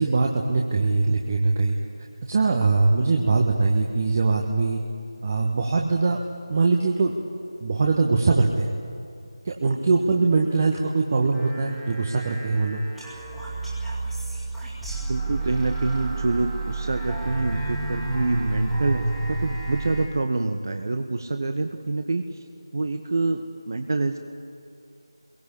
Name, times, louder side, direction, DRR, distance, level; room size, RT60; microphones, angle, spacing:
voice 1, 0.0-1.8 2.3-4.8 5.2-6.2 6.5-7.1 7.6-8.7 9.4-12.8, right 3 dB, 30° right, 1 dB, 1.5 m, -22 dB
sound 1, 11.3-20.1, right 3 dB, ahead, 2.3 m, -30 dB
voice 2, 15.1-22.4 22.7-24.2, right 3 dB, 45° right, 6 dB, 1.4 m, -26 dB
28.0 x 22.0 x 8.5 m, 2.5 s
figure-of-eight pair, 165°, 3 cm